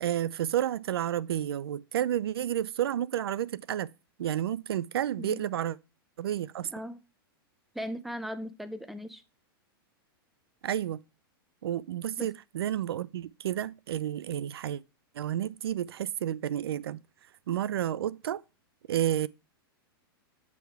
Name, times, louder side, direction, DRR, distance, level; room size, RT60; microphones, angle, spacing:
voice 1, 0.0-3.9 4.2-5.8 6.2-6.7 10.6-11.0 11.6-14.8 15.2-17.0 17.5-18.4 18.9-19.3, right 11 dB, 85° right, 0.4 m, -31 dB
voice 2, 6.7-7.0 7.7-9.2 12.2-12.3, equal, ahead, 0.6 m, -38 dB
8.3 x 3.5 x 4.6 m
hypercardioid pair, 130°, 13 cm